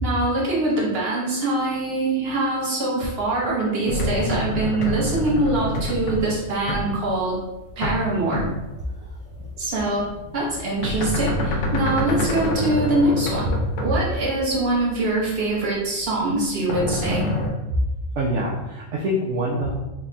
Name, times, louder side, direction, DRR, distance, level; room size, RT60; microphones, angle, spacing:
voice 1, 0.0-7.4 7.8-8.5 9.6-13.5 13.8-17.3, right 2 dB, 55° right, -5 dB, 1.3 m, -23 dB
sound 1, 3.9-8.0 8.3-8.8 9.6-15.6 16.0-17.5, left 1 dB, 85° left, 1.0 m, -27 dB
voice 2, 18.2-19.7, equal, 75° right, -3 dB, 0.9 m, -25 dB
3.4 x 2.2 x 3.8 m, 1.0 s
omnidirectional pair, 1.3 m